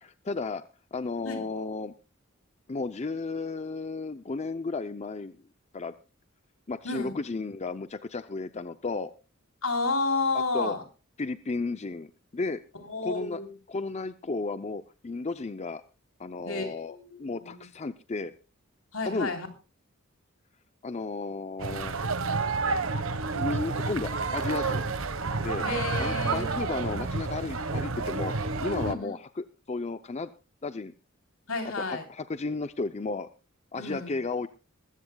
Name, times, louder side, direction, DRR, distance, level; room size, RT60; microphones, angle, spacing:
voice 1, 0.0-0.6 0.9-1.9 2.7-5.4 5.7-5.9 6.7-9.1 10.5-10.7 11.2-12.6 13.0-13.4 13.7-15.8 16.2-18.3 19.0-19.3 20.8-22.0 23.3-24.8 25.4-25.7 26.0-30.3 30.6-30.9 31.8-33.3 33.7-34.5, left 3 dB, 30° left, 11 dB, 0.6 m, -33 dB
voice 2, 6.8-7.2 9.6-10.8 12.7-13.5 16.5-17.6 18.9-19.5 25.6-26.6 28.8-29.1 31.5-32.1 33.7-34.1, left 3 dB, 75° left, 5 dB, 3.6 m, -31 dB
sound 1, 21.6-28.9, right 3 dB, 70° right, 1.3 m, -30 dB
21.0 x 15.0 x 2.3 m, 0.32 s
head